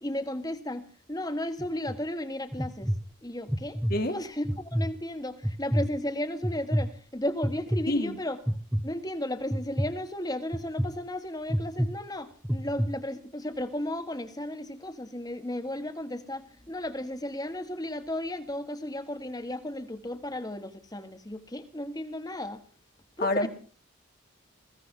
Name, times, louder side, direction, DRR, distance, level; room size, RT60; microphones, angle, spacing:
voice 1, 0.0-2.9 3.2-3.8 4.1-8.4 8.8-22.6 23.2-23.5, left 1 dB, 20° left, 1.4 m, -34 dB
sound 1, 1.6-2.0 2.5-3.0 3.5-3.9 4.4-4.9 5.4-5.9 6.4-6.9 7.4-7.8 8.5-8.8 9.5-9.9 10.5-10.9 11.5-11.9 12.4-12.9, equal, 5° right, 0.8 m, -27 dB
voice 2, 3.9-4.2 7.9-8.1 23.2-23.5, left 1 dB, 45° left, 1.8 m, -27 dB
21.0 x 16.0 x 3.7 m
head